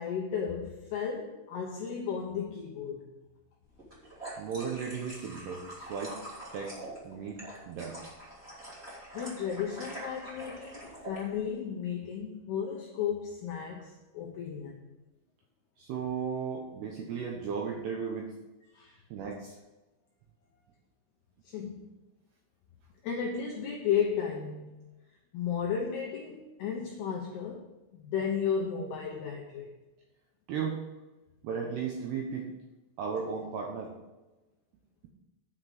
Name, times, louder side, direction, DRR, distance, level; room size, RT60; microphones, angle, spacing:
voice 1, 0.0-3.1 9.1-14.8 18.7-19.0 21.4-21.9 23.0-24.8 25.3-27.7 27.9-29.7, left 7 dB, 80° left, 0 dB, 2.3 m, -34 dB
sound 1, 3.8-11.2, right 1 dB, 20° right, 2.1 m, -45 dB
voice 2, 4.4-6.2 6.5-7.4 7.7-8.0 15.8-18.3 19.1-19.6 30.5-30.8 31.4-32.5 33.0-33.9, right 6 dB, 80° right, 0 dB, 2.4 m, -35 dB
9.3 x 5.0 x 7.7 m, 1.1 s
omnidirectional pair, 5.8 m